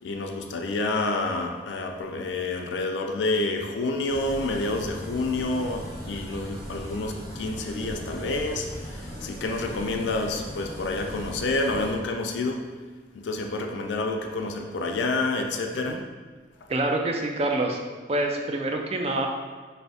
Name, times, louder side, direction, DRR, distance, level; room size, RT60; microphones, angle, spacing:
voice 1, 0.0-12.6 13.1-16.0, left 2 dB, 85° left, 3 dB, 0.4 m, -28 dB
sound 1, 4.1-11.9, equal, 10° right, 1.2 m, -38 dB
voice 2, 16.7-17.8 18.1-19.3, right 2 dB, 35° right, 2 dB, 0.4 m, -26 dB
3.2 x 2.7 x 4.1 m, 1.4 s
head